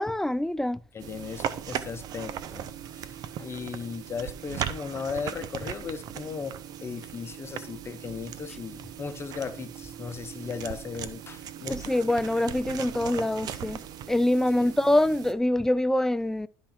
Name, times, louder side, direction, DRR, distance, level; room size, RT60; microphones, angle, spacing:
voice 1, 0.0-0.8 11.7-13.8 14.1-16.5, left 1 dB, 5° left, 0.4 m, -25 dB
voice 2, 0.9-2.7 2.9-6.5 6.8-11.9 14.6-14.7, left 5 dB, 35° left, 0.9 m, -37 dB
sound 1, 1.0-15.3, right 9 dB, 60° right, 0.7 m, -38 dB
11.5 x 3.8 x 4.3 m
supercardioid pair, 70°, 8 cm